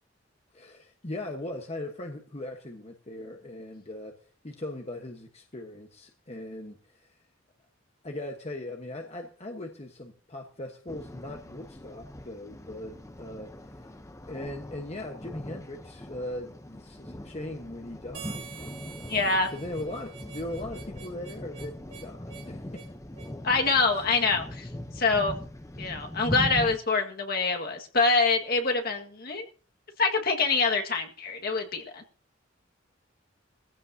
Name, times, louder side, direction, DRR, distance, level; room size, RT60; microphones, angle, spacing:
voice 1, 0.5-4.2 4.4-7.2 8.0-13.9 14.3-18.6 19.5-22.8 23.9-24.0, left 1 dB, 30° left, 3 dB, 1.2 m, -39 dB
sound 1, 10.9-26.8, left 1 dB, 15° left, 0.8 m, -40 dB
Harmonica, 18.1-23.4, right 8 dB, 75° right, 3.3 m, -47 dB
voice 2, 19.1-19.5 23.4-24.7 25.0-25.4 25.8-29.5 30.0-32.0, left 4 dB, 50° left, 3 dB, 1.8 m, -25 dB
19.5 x 15.0 x 2.8 m, 0.41 s
head